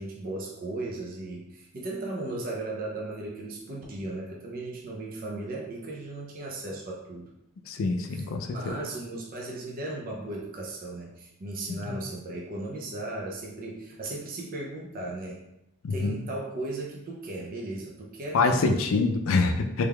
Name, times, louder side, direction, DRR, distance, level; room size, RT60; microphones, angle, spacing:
voice 1, 0.0-7.3 8.1-15.4 15.9-18.7, right 2 dB, 45° right, -2 dB, 0.5 m, -36 dB
voice 2, 7.7-8.8 11.9-12.0 15.8-16.2 18.3-19.9, left 3 dB, 70° left, 5 dB, 0.4 m, -25 dB
3.4 x 3.4 x 2.3 m, 0.86 s
head